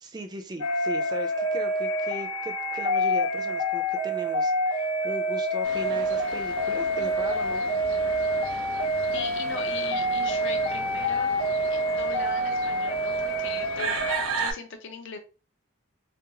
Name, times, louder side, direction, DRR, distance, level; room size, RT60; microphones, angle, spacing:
voice 1, 0.0-7.7, right 1 dB, 20° right, 6 dB, 0.3 m, -38 dB
sound 1, 0.6-14.2, equal, 90° left, 0.7 m, -27 dB
sound 2, 5.6-14.5, right 4 dB, 75° right, 0.6 m, -36 dB
voice 2, 9.1-11.3 11.7-14.0 14.4-15.2, left 4 dB, 55° left, 6 dB, 0.4 m, -39 dB
2.5 x 2.2 x 2.7 m, 0.33 s
head